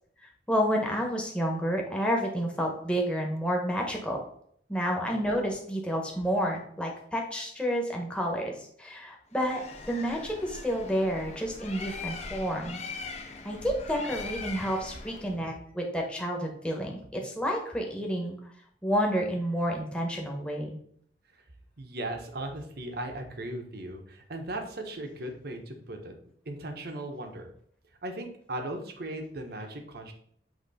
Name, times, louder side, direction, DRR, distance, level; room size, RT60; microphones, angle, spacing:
voice 1, 0.5-4.2 4.7-13.1 13.4-18.4 18.8-20.8, equal, 5° left, 0 dB, 1.2 m, -30 dB
Bird, 9.3-15.4, left 4 dB, 40° left, 0.8 m, -41 dB
voice 2, 21.8-26.1 26.5-27.5 28.0-30.1, right 1 dB, 60° right, 4 dB, 1.1 m, -37 dB
8.1 x 2.9 x 4.2 m, 0.65 s
head